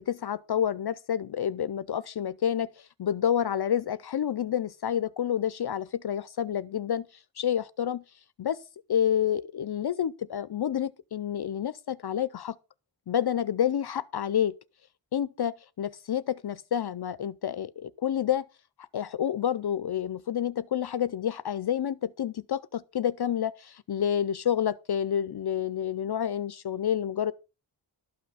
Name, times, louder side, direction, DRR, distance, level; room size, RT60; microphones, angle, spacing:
voice 1, 0.0-7.1 7.4-8.0 8.4-8.6 8.9-12.6 13.1-14.6 15.1-18.5 18.9-27.3, left 9 dB, 60° left, 0.5 m, -29 dB
12.5 x 5.9 x 5.5 m
wide cardioid pair, 115°, 45 cm